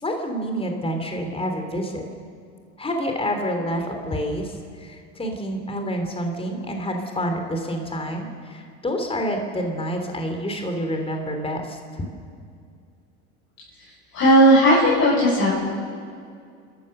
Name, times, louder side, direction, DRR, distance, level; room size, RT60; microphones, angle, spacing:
voice 1, 0.0-2.0 2.8-4.5 4.8-12.0, equal, 15° left, 4 dB, 3.3 m, -28 dB
voice 2, 14.1-15.5, right 1 dB, 45° left, -7 dB, 6.5 m, -15 dB
29.5 x 14.0 x 6.7 m, 2.3 s
supercardioid pair, 100°, 37 cm